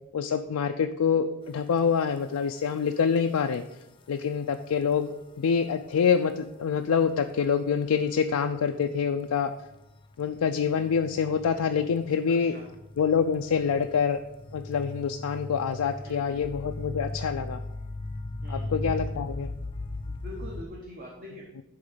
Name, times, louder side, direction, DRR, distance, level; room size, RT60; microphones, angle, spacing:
voice 1, 0.1-3.6 4.1-9.5 10.2-12.5 13.0-14.2 14.5-17.6 18.5-19.5, left 6 dB, 85° left, 5 dB, 0.4 m, -26 dB
sound 1, 1.9-2.0 2.6-2.7 3.6-3.7 6.9-7.2 8.8-8.9 9.6-20.6, left 2 dB, 20° left, 0.4 m, -38 dB
voice 2, 12.3-12.7 16.0-16.4 18.4-18.7 20.1-21.5, equal, 40° right, -2 dB, 1.1 m, -44 dB
11.0 x 3.8 x 5.0 m, 0.90 s
head